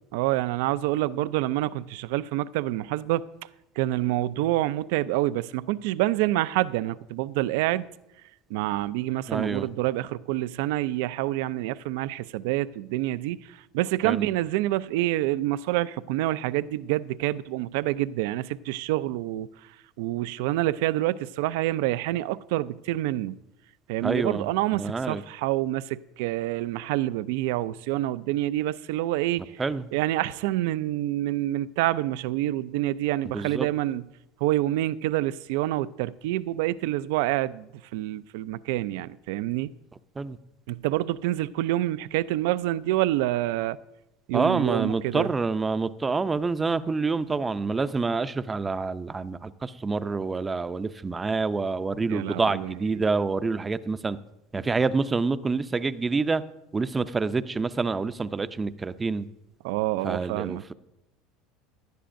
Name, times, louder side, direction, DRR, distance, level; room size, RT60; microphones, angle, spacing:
voice 1, 0.1-3.2 3.8-7.9 8.5-19.5 20.0-23.4 23.9-29.4 29.9-34.0 34.4-39.7 40.7-43.8 44.3-45.3 52.1-53.0 59.6-60.6, right 15 dB, 75° right, 0.3 m, -27 dB
voice 2, 9.3-9.7 14.0-14.2 24.0-24.5 24.7-25.2 29.6-29.9 33.2-33.7 40.2-40.4 44.3-54.2 54.5-56.4 56.7-59.3 60.0-60.7, right 4 dB, 20° right, 0.5 m, -27 dB
17.0 x 11.0 x 2.6 m
supercardioid pair, 115°, 0 cm